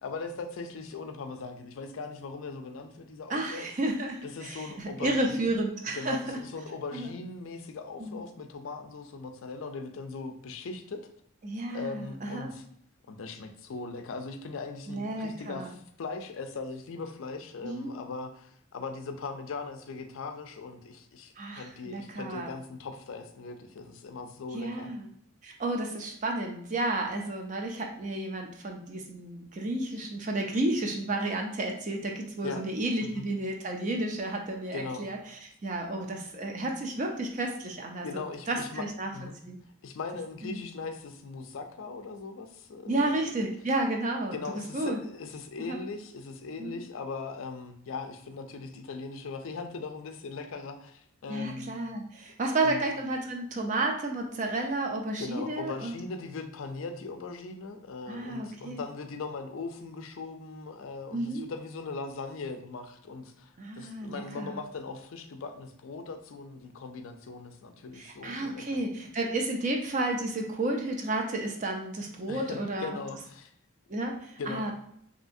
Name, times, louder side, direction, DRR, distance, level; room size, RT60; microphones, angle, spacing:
voice 1, 0.0-3.6 4.2-5.5 5.9-11.0 11.7-12.6 13.1-24.9 32.4-32.6 33.0-33.2 34.7-35.0 38.0-38.8 39.1-39.4 39.8-43.1 44.3-51.7 52.6-52.8 55.2-68.8 72.3-73.5 74.4-74.7, left 4 dB, 65° left, 7 dB, 0.4 m, -39 dB
voice 2, 3.3-6.4 6.9-7.1 8.0-8.2 11.4-12.5 14.9-15.7 17.6-18.0 21.4-22.5 24.5-25.1 25.4-39.1 39.5-39.6 40.4-40.6 42.9-45.0 45.6-45.8 46.6-46.8 51.3-55.9 58.1-58.8 61.1-61.5 63.6-64.6 67.9-73.0 73.9-74.7, right 2 dB, 35° right, 2 dB, 0.4 m, -32 dB
3.2 x 2.7 x 2.6 m, 0.67 s
head